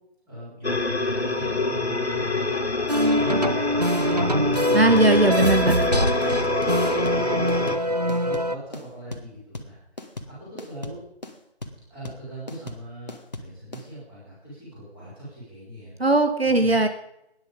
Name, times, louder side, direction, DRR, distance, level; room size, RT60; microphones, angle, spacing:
voice 1, 0.3-2.6 3.1-9.8 10.3-11.0 11.9-15.9 16.4-16.8, right 1 dB, 5° right, -9 dB, 4.2 m, -39 dB
sound 1, 0.6-7.8, left 3 dB, 75° left, 1.8 m, -26 dB
sound 2, 2.9-8.6, equal, 40° right, 0.5 m, -23 dB
sound 3, 4.1-13.9, left 2 dB, 40° left, 1.7 m, -38 dB
voice 2, 4.7-5.8 16.0-16.9, right 2 dB, 65° right, 8 dB, 1.4 m, -19 dB
19.5 x 10.5 x 5.3 m, 0.80 s
figure-of-eight pair, 165°, 33 cm